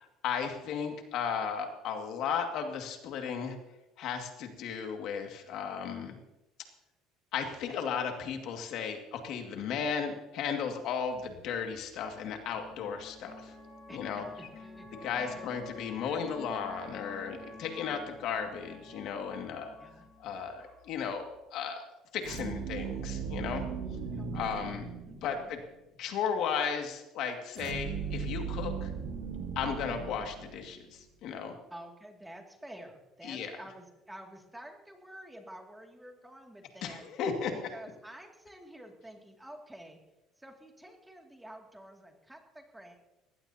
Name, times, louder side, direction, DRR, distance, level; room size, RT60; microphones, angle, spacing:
voice 1, 0.2-3.6 4.0-6.2 7.3-13.5 13.9-14.2 15.0-19.7 20.2-21.2 21.5-21.8 22.1-23.7 24.3-24.8 25.2-25.6 26.0-28.9 29.6-31.6 33.2-33.5 36.8-37.6, left 7 dB, 60° left, 4 dB, 2.1 m, -35 dB
sound 1, 11.2-21.4, left 2 dB, 25° left, 6.8 m, -50 dB
voice 2, 13.9-15.5 17.6-17.9 19.8-20.1 24.1-24.8 25.0-25.6 31.7-37.1 37.7-40.0 40.4-43.0, right 1 dB, 5° right, 2 dB, 2.4 m, -49 dB
sound 2, 22.2-25.5 27.6-30.8, right 6 dB, 70° right, 2.2 m, -37 dB
19.5 x 16.5 x 2.9 m, 0.97 s
cardioid pair, 125°, 0 cm